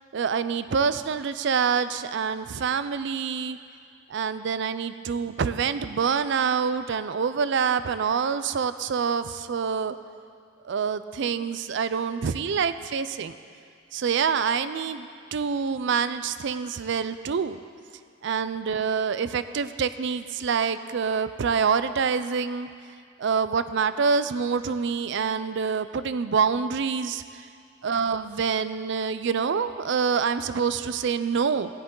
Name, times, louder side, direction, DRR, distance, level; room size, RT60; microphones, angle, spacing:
voice 1, 0.1-3.6 4.1-10.0 10.6-13.4 13.9-17.6 18.2-22.7 23.2-27.4 27.8-31.7, right 6 dB, 65° right, 13 dB, 0.4 m, -26 dB
15.5 x 10.5 x 3.8 m, 2.2 s
head